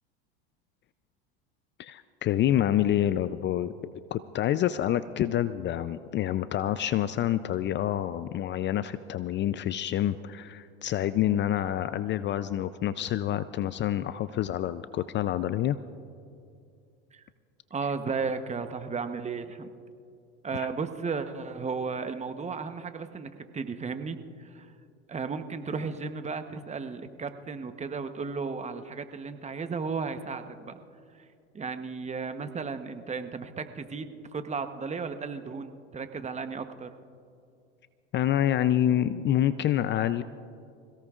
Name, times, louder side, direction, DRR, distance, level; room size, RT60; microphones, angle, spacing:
voice 1, 1.8-3.7 4.1-15.8 20.5-20.7 38.1-40.2, left 11 dB, 35° left, 14 dB, 0.5 m, -27 dB
voice 2, 17.7-19.7 20.4-24.7 25.1-30.8 31.1-31.2 31.5-36.9, right 5 dB, 20° right, 9 dB, 1.0 m, -34 dB
27.0 x 17.0 x 2.5 m, 2.4 s
hypercardioid pair, 90°, 33 cm